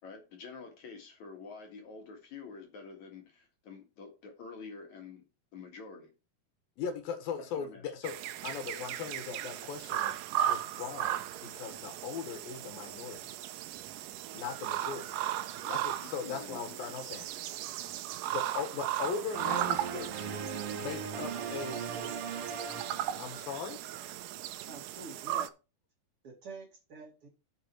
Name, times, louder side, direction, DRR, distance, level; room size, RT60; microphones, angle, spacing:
voice 1, 0.0-5.2 5.5-6.1 7.4-7.9 15.6-15.8 16.2-16.8, left 5 dB, 55° left, 2.9 m, -48 dB
voice 2, 6.8-8.1 8.4-10.2 10.5-13.3 14.3-15.2 15.7-17.3 18.3-20.3 20.7-21.8 23.2-23.8, left 6 dB, 75° left, 3.1 m, -39 dB
sound 1, 8.0-25.5, right 12 dB, 75° right, 2.1 m, -37 dB
sound 2, 19.3-23.8, right 6 dB, 60° right, 1.6 m, -39 dB
voice 3, 21.2-22.1 24.6-25.5 26.2-27.3, right 4 dB, 40° right, 2.7 m, -48 dB
10.0 x 6.6 x 4.5 m
omnidirectional pair, 4.3 m